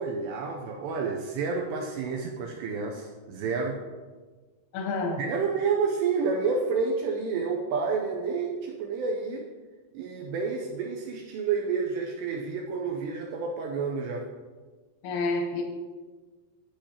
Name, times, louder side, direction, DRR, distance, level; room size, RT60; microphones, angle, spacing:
voice 1, 0.0-3.8 5.2-9.5 9.9-14.3, right 5 dB, 90° right, 1 dB, 2.4 m, -29 dB
voice 2, 4.7-5.2 15.0-15.6, left 3 dB, 85° left, 1 dB, 3.6 m, -28 dB
9.7 x 8.9 x 2.9 m, 1.4 s
omnidirectional pair, 5.7 m